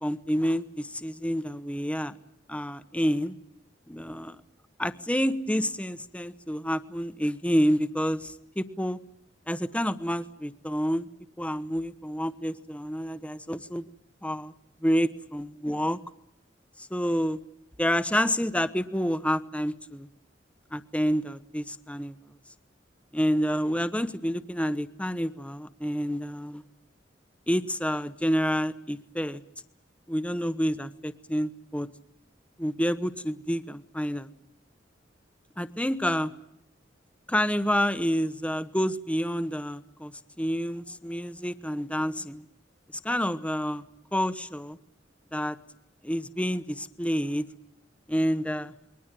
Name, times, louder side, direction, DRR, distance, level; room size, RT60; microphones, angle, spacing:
voice 1, 0.0-2.1 2.5-3.3 3.9-4.4 4.8-9.0 9.5-11.1 11.4-13.9 14.2-14.5 14.8-16.0 16.9-17.4 17.8-20.1 20.7-22.2 23.1-26.6 27.5-29.4 30.1-31.9 32.6-34.3 35.6-36.3 37.3-40.1 40.4-42.4 43.0-43.8 44.1-44.8 45.3-45.6 46.0-47.4 48.1-48.7, equal, 5° left, 12 dB, 1.1 m, -28 dB
28.5 x 22.0 x 7.6 m, 0.79 s
head